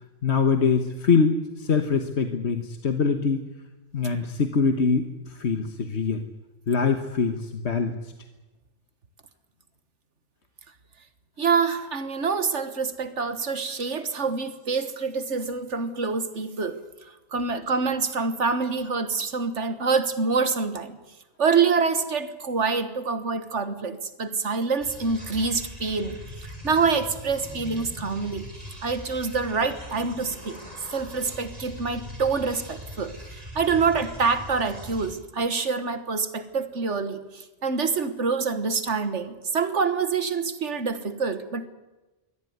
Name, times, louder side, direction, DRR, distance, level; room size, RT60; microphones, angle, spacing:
voice 1, 0.2-3.4 3.9-6.3 6.7-8.0, left 5 dB, 70° left, 7 dB, 1.6 m, -23 dB
voice 2, 11.4-16.8 17.3-21.0 21.4-26.2 26.4-28.5 28.8-30.6 30.9-33.1 33.5-41.7, right 5 dB, 75° right, 11 dB, 1.8 m, -26 dB
sound 1, 24.8-35.1, left 1 dB, 30° right, 6.4 m, -41 dB
23.5 x 17.5 x 9.5 m, 1.1 s
omnidirectional pair, 1.2 m